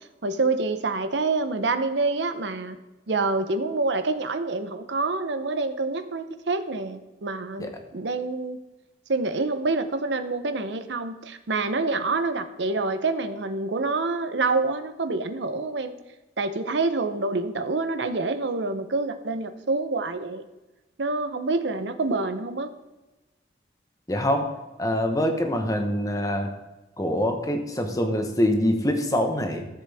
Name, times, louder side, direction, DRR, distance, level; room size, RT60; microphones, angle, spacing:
voice 1, 0.2-2.8 3.1-8.6 9.1-15.9 16.4-20.4 21.0-22.7, right 3 dB, 75° right, 10 dB, 0.8 m, -27 dB
voice 2, 24.1-24.5 24.8-26.5 27.0-29.7, left 1 dB, 20° left, 4 dB, 1.1 m, -24 dB
14.0 x 7.6 x 3.5 m, 1.1 s
head